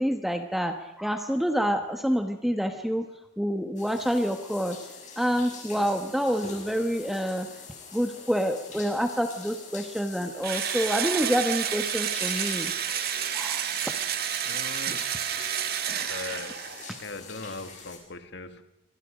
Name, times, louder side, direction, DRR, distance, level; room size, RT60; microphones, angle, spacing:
voice 1, 0.0-3.1 3.4-4.8 5.2-7.5 7.9-12.7 13.3-13.9 14.9-15.0 15.9-16.1, equal, ahead, 1.2 m, -27 dB
sound 1, 3.8-18.0, left 5 dB, 35° left, 6.4 m, -44 dB
Engine / Drill, 10.4-17.0, right 9 dB, 50° right, 1.7 m, -30 dB
voice 2, 14.4-15.1 16.1-16.6 17.0-18.6, left 3 dB, 60° left, 1.9 m, -39 dB
28.0 x 23.5 x 5.1 m
head